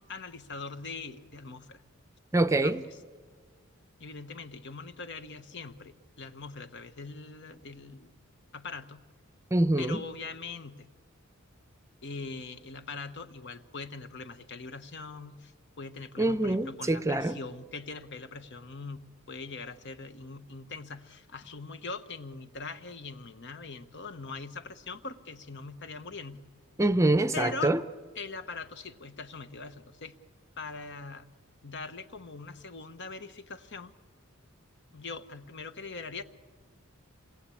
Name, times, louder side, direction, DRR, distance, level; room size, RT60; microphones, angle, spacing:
voice 1, 0.0-1.8 2.6-2.8 4.0-8.1 8.5-9.0 9.8-10.9 12.0-15.5 15.8-26.4 27.3-27.7 28.2-30.2 30.6-31.3 31.6-33.9 34.9-36.2, left 4 dB, 55° left, 10 dB, 1.1 m, -41 dB
voice 2, 2.3-2.8 9.5-10.0 16.2-17.4 26.8-27.8, right 2 dB, 15° right, 12 dB, 0.7 m, -25 dB
27.5 x 20.5 x 8.6 m, 1.5 s
head